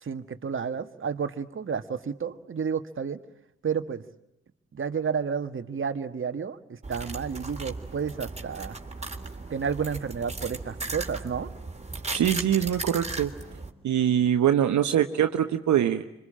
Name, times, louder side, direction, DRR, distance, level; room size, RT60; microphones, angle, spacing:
voice 1, 0.0-3.2 3.6-4.0 4.7-6.6 6.9-8.8 9.5-11.5, right 6 dB, 40° right, 9 dB, 1.7 m, -31 dB
sound 1, 6.8-13.7, right 3 dB, 20° right, 3.4 m, -37 dB
voice 2, 12.1-13.3 13.8-16.0, right 10 dB, 60° right, 7 dB, 1.3 m, -23 dB
26.0 x 25.5 x 8.8 m, 0.82 s
hypercardioid pair, 45°, 33 cm